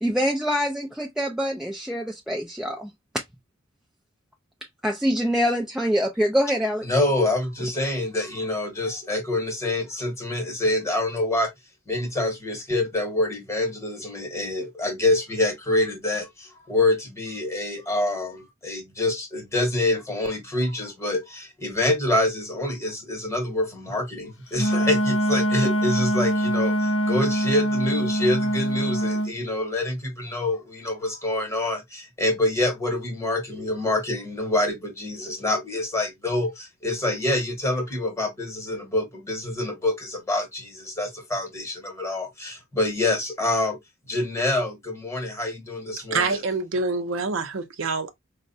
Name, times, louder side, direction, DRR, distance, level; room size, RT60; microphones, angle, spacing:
voice 1, 0.0-2.9 3.1-3.2 4.8-6.9, equal, ahead, 0.3 m, -25 dB
voice 2, 6.8-11.5 11.9-43.8 44.1-46.4, left 1 dB, 15° left, 1.0 m, -26 dB
Wind instrument woodwind instrument, 24.5-29.3, right 1 dB, 65° left, 0.6 m, -23 dB
voice 3, 46.1-48.1, right 4 dB, 70° right, 0.6 m, -26 dB
4.4 x 2.1 x 2.5 m
head